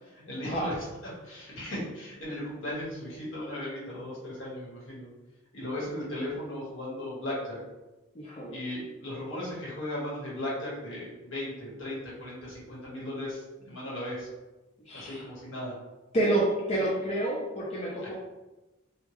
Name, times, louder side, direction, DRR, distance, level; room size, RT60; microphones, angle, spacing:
voice 1, 0.0-0.7 1.2-5.1 5.5-7.6 8.5-14.3 14.9-15.7, left 1 dB, 70° left, -6 dB, 1.4 m, -36 dB
voice 2, 8.2-8.6 14.9-15.2 16.1-18.1, right 1 dB, 30° left, -5 dB, 0.4 m, -29 dB
3.5 x 2.3 x 3.1 m, 1.1 s
head